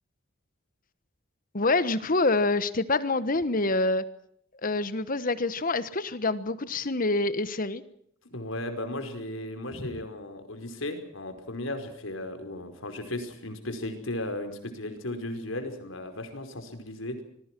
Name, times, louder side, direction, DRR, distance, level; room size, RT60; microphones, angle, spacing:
voice 1, 1.5-4.0 4.6-7.8 9.8-9.9, left 2 dB, 45° left, 14 dB, 1.3 m, -26 dB
voice 2, 8.3-17.2, left 1 dB, 80° left, 7 dB, 5.0 m, -36 dB
26.0 x 22.0 x 6.1 m, 0.67 s
head